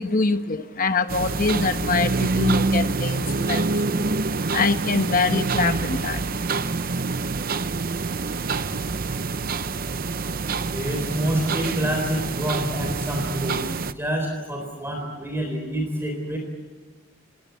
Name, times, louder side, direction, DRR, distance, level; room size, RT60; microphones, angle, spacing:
voice 1, 0.0-3.7 4.5-6.7, left 4 dB, 40° left, 9 dB, 1.1 m, -24 dB
sound 1, 1.1-13.9, right 3 dB, 45° right, 0.7 m, -26 dB
voice 2, 10.7-13.6 14.0-16.4, equal, 10° right, 2 dB, 3.8 m, -27 dB
29.0 x 19.0 x 8.4 m, 1.4 s
head